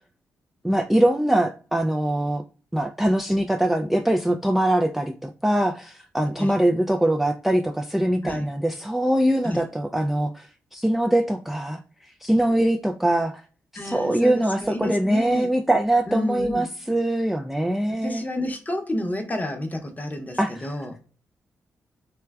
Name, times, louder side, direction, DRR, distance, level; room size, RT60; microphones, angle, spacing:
voice 1, 0.6-2.4 2.7-13.4 13.8-18.2 20.4-20.7, right 1 dB, 5° right, 4 dB, 0.3 m, -23 dB
voice 2, 13.7-15.5 16.1-16.7 17.9-21.0, left 1 dB, 25° left, 4 dB, 0.8 m, -30 dB
3.1 x 2.2 x 2.3 m, 0.39 s
hypercardioid pair, 45°, 7 cm